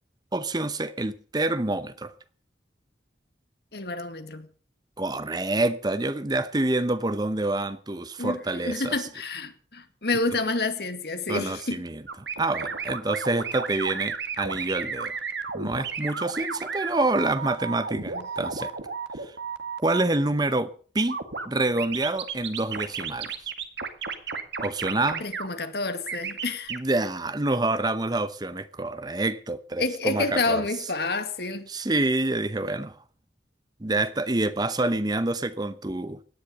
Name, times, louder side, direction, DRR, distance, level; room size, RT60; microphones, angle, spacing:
voice 1, 0.3-2.1 5.0-8.9 11.3-12.0 12.4-15.1 15.5-18.7 19.8-21.2 21.5-23.3 24.6-25.2 26.7-30.6 31.7-33.0 33.8-36.2, right 2 dB, 25° right, 0.8 m, -27 dB
voice 2, 3.7-4.5 8.2-11.8 18.1-18.3 25.2-26.7 29.8-31.7, left 3 dB, 65° left, 2.2 m, -29 dB
sound 1, 12.1-20.0 21.1-21.4 21.8-25.5 26.1-26.8, right 5 dB, 80° right, 2.0 m, -33 dB
17.5 x 10.0 x 6.7 m
head